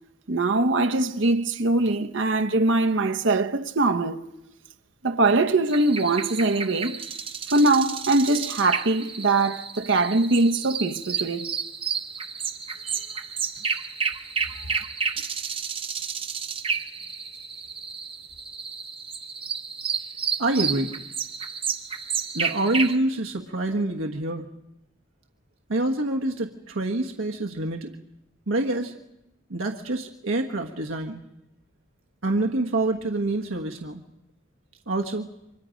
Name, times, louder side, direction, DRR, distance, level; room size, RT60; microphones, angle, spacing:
voice 1, 0.3-4.3 5.0-7.0 7.5-11.5 12.8-12.9, right 2 dB, 65° right, 1.0 m, -22 dB
sound 1, 5.7-23.0, right 6 dB, 25° right, 1.0 m, -31 dB
voice 2, 20.4-20.9 22.3-24.5 25.7-27.9 28.5-28.9 29.5-31.2 32.2-34.0 34.9-35.3, right 2 dB, 80° right, 1.5 m, -26 dB
30.0 x 25.0 x 5.2 m
head